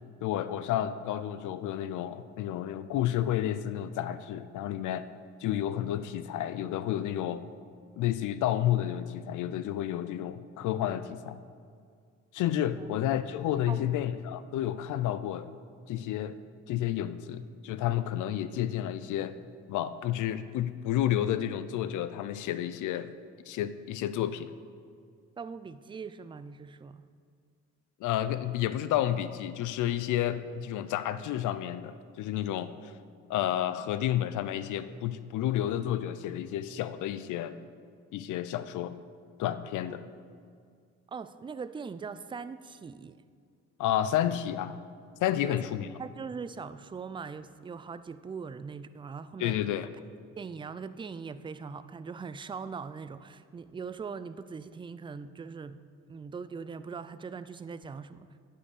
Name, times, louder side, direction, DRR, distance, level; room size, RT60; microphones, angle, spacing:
voice 1, 0.2-5.1 5.4-7.4 8.0-11.4 12.3-15.5 15.9-16.4 16.7-19.4 19.7-23.1 23.5-24.5 28.0-32.9 33.3-37.6 38.1-39.0 39.4-40.0 43.8-44.8 45.2-45.9 49.4-49.9, left 11 dB, 80° left, 13 dB, 0.5 m, -31 dB
voice 2, 25.4-27.1 39.8-40.4 41.1-43.2 45.4-49.6 50.4-55.8 56.1-58.3, right 5 dB, 15° right, 13 dB, 0.3 m, -41 dB
9.8 x 5.5 x 6.7 m, 2.2 s
cardioid pair, 90°, 30 cm